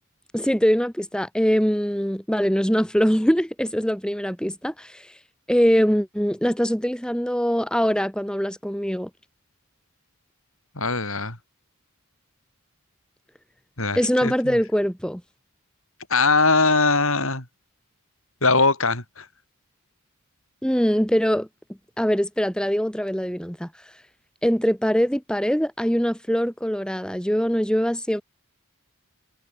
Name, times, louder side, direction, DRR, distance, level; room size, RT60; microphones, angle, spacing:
voice 1, 0.3-5.1 5.5-9.1 13.9-15.2 20.6-21.5 22.0-23.7 24.4-28.2, equal, 5° left, 2.8 m, -22 dB
voice 2, 10.8-11.4 13.8-14.6 16.1-17.4 18.4-19.3, left 3 dB, 65° left, 7.7 m, -21 dB
head